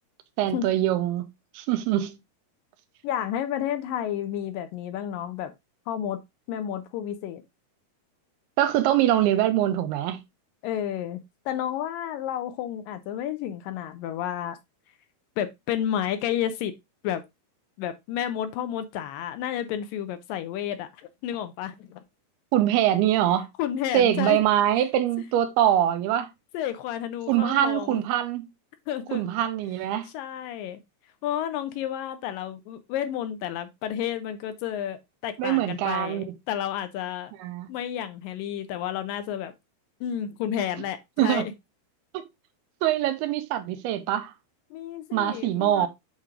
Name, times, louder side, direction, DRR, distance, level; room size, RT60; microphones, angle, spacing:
voice 1, 0.4-1.2 1.5-2.2 8.6-10.2 22.5-23.5 23.9-26.3 27.3-28.5 29.1-30.1 35.4-36.3 37.4-37.7 41.2-41.5 42.1-42.2 42.8-44.3 45.1-45.9, right 12 dB, 90° right, 2.7 m, -23 dB
voice 2, 3.0-5.5 5.9-6.2 6.5-7.4 10.6-11.2 11.5-14.6 15.4-16.7 17.0-17.2 17.8-20.9 21.2-22.0 23.6-24.4 26.5-28.0 28.9-29.2 30.1-30.8 31.2-37.3 37.7-39.5 40.0-41.5 44.7-45.9, left 10 dB, 80° left, 2.1 m, -31 dB
8.2 x 3.3 x 3.6 m
omnidirectional pair, 4.4 m